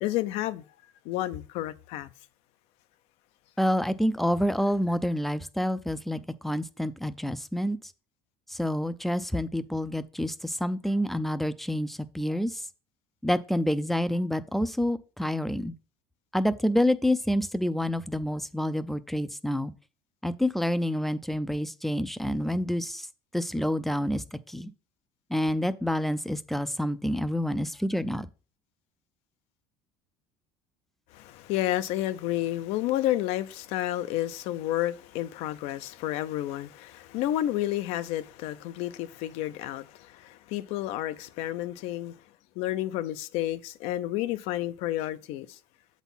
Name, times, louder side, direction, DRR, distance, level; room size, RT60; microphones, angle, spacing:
voice 1, 0.0-0.6 1.0-2.1 31.1-42.2 42.6-45.6, left 14 dB, 70° left, 0.6 m, -30 dB
voice 2, 3.6-7.8 8.5-12.7 13.2-15.7 16.3-19.7 20.2-23.1 23.3-24.7 25.3-28.3, equal, ahead, 0.4 m, -28 dB
8.0 x 4.1 x 5.5 m
cardioid pair, 145°, 11 cm